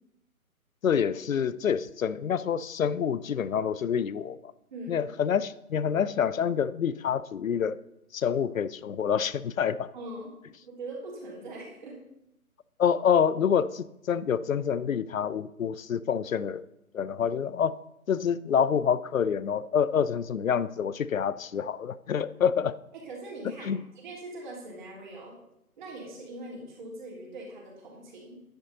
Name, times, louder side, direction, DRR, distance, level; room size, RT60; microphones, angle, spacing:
voice 1, 0.8-4.5 4.9-7.8 8.1-9.9 12.8-16.6 16.9-17.7 18.1-22.8 23.6-23.8, left 7 dB, 65° left, 17 dB, 0.6 m, -27 dB
voice 2, 4.7-5.1 9.9-10.3 10.6-12.0 22.4-22.5 22.9-23.7 24.0-25.4 25.8-28.4, right 2 dB, 30° right, -2 dB, 3.0 m, -41 dB
10.0 x 8.2 x 4.0 m, 0.83 s
hypercardioid pair, 160°, 44 cm